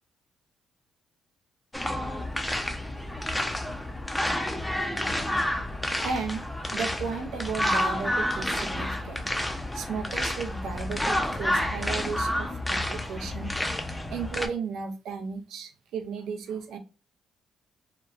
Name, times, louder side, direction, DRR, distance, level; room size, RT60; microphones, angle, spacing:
sound 1, 1.7-14.5, left 1 dB, 10° left, 0.4 m, -29 dB
voice 1, 6.0-6.4 6.7-9.3 9.7-13.5 14.1-16.8, right 5 dB, 80° right, 5 dB, 0.4 m, -34 dB
2.8 x 2.0 x 2.3 m, 0.33 s
cardioid pair, 90°, 0 cm